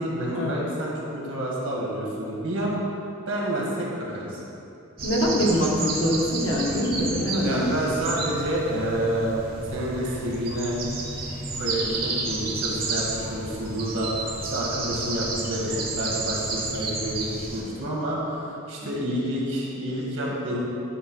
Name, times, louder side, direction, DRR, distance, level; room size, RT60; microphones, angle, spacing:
voice 1, 0.0-2.7 3.3-4.4 7.4-9.3 9.7-10.8 11.5-20.6, right 1 dB, 75° right, -4 dB, 1.6 m, -29 dB
voice 2, 5.0-8.0 18.8-18.9, equal, 70° left, -3 dB, 1.2 m, -24 dB
sound 1, 5.0-17.6, right 3 dB, 45° right, 0.9 m, -31 dB
9.3 x 3.3 x 4.7 m, 2.8 s
head